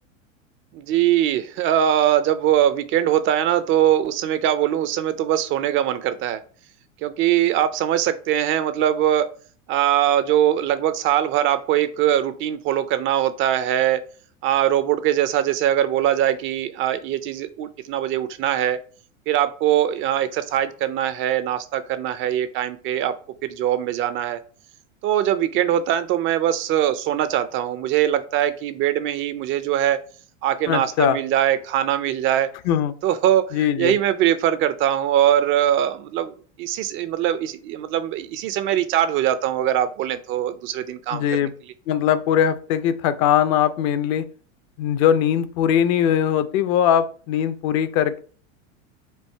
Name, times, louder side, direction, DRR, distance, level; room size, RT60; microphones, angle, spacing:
voice 1, 0.7-6.4 7.0-9.3 9.7-14.0 14.4-18.8 19.3-23.1 23.4-24.4 25.0-30.0 30.4-32.5 33.0-36.3 36.6-41.5, right 11 dB, 35° right, 12 dB, 0.4 m, -21 dB
voice 2, 30.7-31.2 32.6-32.9 33.5-34.0 41.1-41.5 41.9-44.3 44.8-48.2, left 9 dB, 45° left, 13 dB, 0.5 m, -20 dB
4.6 x 2.6 x 4.4 m, 0.41 s
hypercardioid pair, 110°, 39 cm